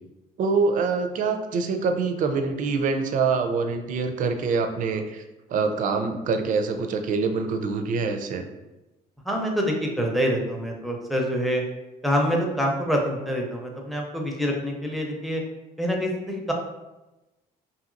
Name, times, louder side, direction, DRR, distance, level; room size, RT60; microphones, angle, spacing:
voice 1, 0.4-5.2 5.5-8.5, right 4 dB, 50° right, 6 dB, 0.4 m, -25 dB
voice 2, 9.2-11.6 12.0-15.4 15.8-16.5, equal, ahead, 0 dB, 0.5 m, -26 dB
2.8 x 2.7 x 2.5 m, 1.0 s
cardioid pair, 110°, 17 cm